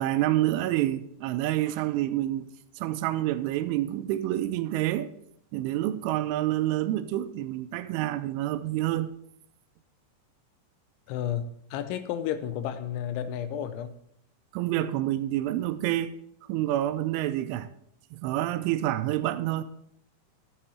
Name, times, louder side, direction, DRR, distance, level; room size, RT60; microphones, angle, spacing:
voice 1, 0.0-2.5 2.8-5.1 5.5-9.1 14.5-16.2 16.5-17.7 18.1-19.6, right 14 dB, 85° right, 3.1 m, -28 dB
voice 2, 11.1-14.0, left 9 dB, 80° left, 2.9 m, -32 dB
12.5 x 7.6 x 4.3 m
omnidirectional pair, 5.5 m